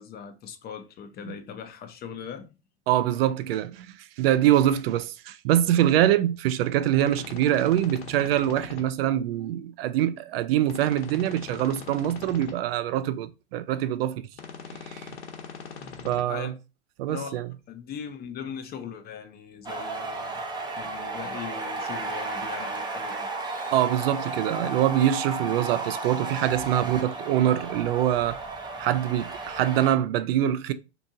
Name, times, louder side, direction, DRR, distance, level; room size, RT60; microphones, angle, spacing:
voice 1, 0.0-2.6 16.3-16.5 17.1-17.4 17.7-20.5 20.8-23.3, left 7 dB, 30° left, 0.7 m, -39 dB
voice 2, 2.9-14.3 14.7-15.1 16.0-16.5 17.0-17.5 23.7-28.4 28.8-30.7, right 12 dB, 60° right, 0.4 m, -24 dB
sound 1, 7.0-8.8 10.6-12.5 14.3-16.2, left 5 dB, 65° left, 1.2 m, -41 dB
sound 2, 19.6-30.0, right 3 dB, 15° right, 0.7 m, -33 dB
2.8 x 2.6 x 3.6 m
hypercardioid pair, 100°, 34 cm